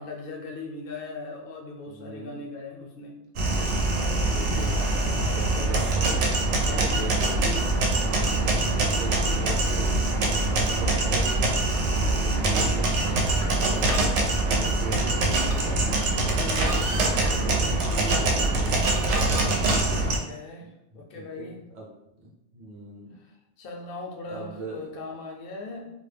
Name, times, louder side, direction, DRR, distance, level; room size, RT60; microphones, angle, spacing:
voice 1, 0.0-3.2 6.6-7.0 8.0-8.6 11.9-12.2 16.4-17.0 19.4-21.6 23.6-25.9, left 3 dB, 60° left, 1 dB, 0.6 m, -40 dB
voice 2, 1.8-2.4 4.1-7.7 8.1-11.6 11.9-16.1 16.7-18.7 20.2-21.9 22.2-23.2 24.3-24.9, right 2 dB, 45° right, -2 dB, 0.7 m, -40 dB
sound 1, 3.4-20.2, right 2 dB, 80° right, 0.9 m, -24 dB
2.3 x 2.0 x 3.2 m, 0.88 s
omnidirectional pair, 1.2 m